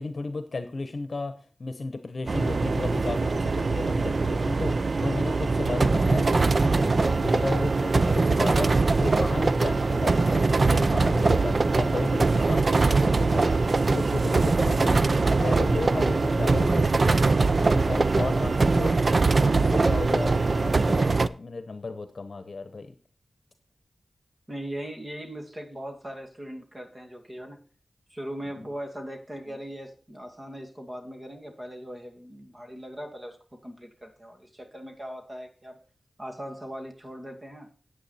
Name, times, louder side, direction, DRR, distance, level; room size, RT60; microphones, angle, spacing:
voice 1, 0.0-1.3 1.6-13.6 13.9-19.2 19.5-22.9 28.6-28.7, left 3 dB, 55° left, 10 dB, 1.0 m, -34 dB
sound 1, 2.3-21.3, right 3 dB, 50° right, 0.4 m, -22 dB
voice 2, 24.5-27.6 28.1-35.8 36.2-37.7, equal, 30° right, 3 dB, 2.2 m, -39 dB
9.9 x 8.9 x 4.3 m, 0.38 s
wide cardioid pair, 90°, 0 cm